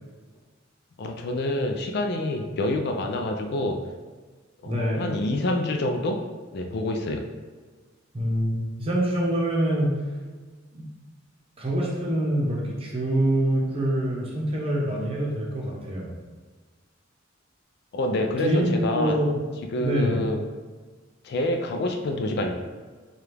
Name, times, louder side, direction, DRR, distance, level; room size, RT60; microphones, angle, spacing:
voice 1, 1.0-3.8 4.6-6.2 6.5-7.3 17.9-19.2 19.7-20.4 21.2-22.5, left 1 dB, 55° left, 4 dB, 0.4 m, -27 dB
voice 2, 4.7-5.1 8.1-10.0 11.6-16.1 18.4-19.4 19.8-20.2, right 1 dB, 30° right, -3 dB, 0.9 m, -25 dB
4.7 x 2.4 x 3.3 m, 1.4 s
head